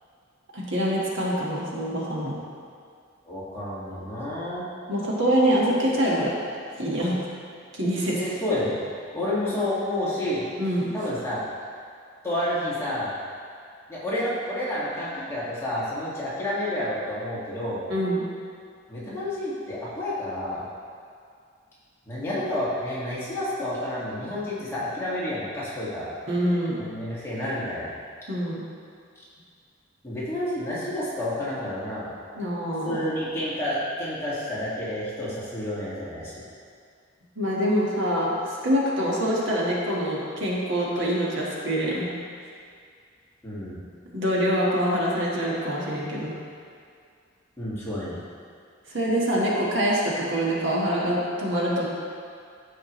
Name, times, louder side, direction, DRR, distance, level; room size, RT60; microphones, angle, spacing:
voice 1, 0.5-2.4 4.9-6.3 6.8-7.3 7.7-8.3 10.6-10.8 17.9-18.2 26.3-26.8 28.3-28.7 32.3-33.0 37.4-38.3 38.6-42.1 44.0-46.3 48.9-51.9, equal, 65° right, -5 dB, 1.5 m, -25 dB
voice 2, 3.2-4.6 8.2-8.7 9.1-10.4 10.9-11.5 12.2-13.1 13.9-17.8 18.9-20.6 22.1-26.1 26.8-27.9 30.0-32.1 32.8-36.4 43.4-43.8 47.6-48.2, left 1 dB, 15° left, -9 dB, 1.9 m, -30 dB
13.0 x 5.0 x 3.1 m, 2.3 s
head